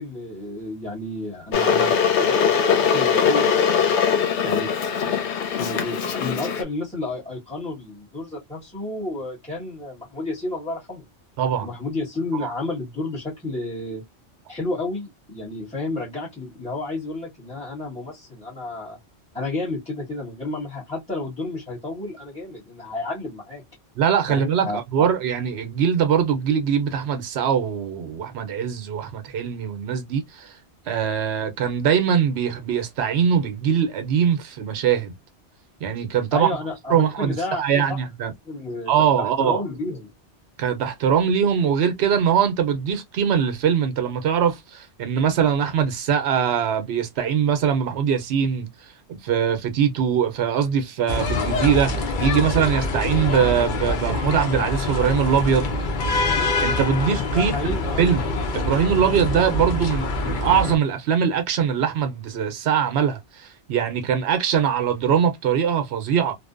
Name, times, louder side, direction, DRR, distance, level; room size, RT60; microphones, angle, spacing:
voice 1, 0.0-3.9 4.4-4.7 5.5-11.0 11.6-14.0 14.5-19.0 19.3-23.6 24.3-25.1 36.3-40.1 57.3-58.1, left 2 dB, 5° left, 0.9 m, -31 dB
Water / Boiling, 1.5-6.6, left 7 dB, 85° left, 1.0 m, -21 dB
voice 2, 11.4-11.7 12.4-12.5 24.0-30.5 30.9-35.1 35.8-36.5 36.9-38.3 38.9-39.6 40.6-48.7 49.1-55.7 56.6-57.5 58.0-58.3 58.5-66.3, right 8 dB, 70° right, 0.9 m, -22 dB
sound 1, 51.1-60.7, left 3 dB, 55° left, 0.6 m, -25 dB
2.6 x 2.1 x 2.3 m
omnidirectional pair, 1.2 m